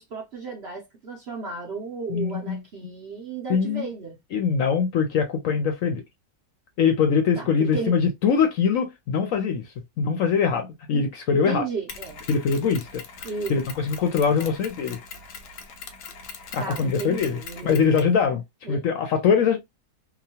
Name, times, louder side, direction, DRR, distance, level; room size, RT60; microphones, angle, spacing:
voice 1, 0.0-4.2 7.4-8.0 10.9-11.1 11.3-12.2 13.2-13.7 14.3-14.6 16.6-17.8 18.6-18.8, right 4 dB, 55° right, 0.7 m, -34 dB
voice 2, 2.1-2.6 3.5-3.9 4.3-6.0 6.8-9.6 10.0-11.6 12.3-13.0 13.5-15.0 16.5-18.4 18.7-19.6, left 6 dB, 65° left, 0.8 m, -22 dB
Mechanisms, 11.9-18.2, left 5 dB, 90° left, 1.2 m, -41 dB
3.0 x 2.2 x 2.7 m
omnidirectional pair, 1.7 m